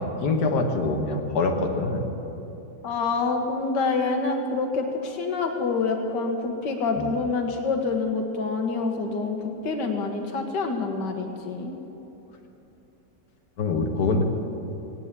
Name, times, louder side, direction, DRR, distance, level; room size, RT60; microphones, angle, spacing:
voice 1, 0.0-2.0 7.0-7.1 13.6-14.2, left 3 dB, 65° left, 3 dB, 1.8 m, -24 dB
voice 2, 2.8-11.7, left 4 dB, 90° left, 4 dB, 1.8 m, -27 dB
18.0 x 9.3 x 8.2 m, 3.0 s
omnidirectional pair, 1.8 m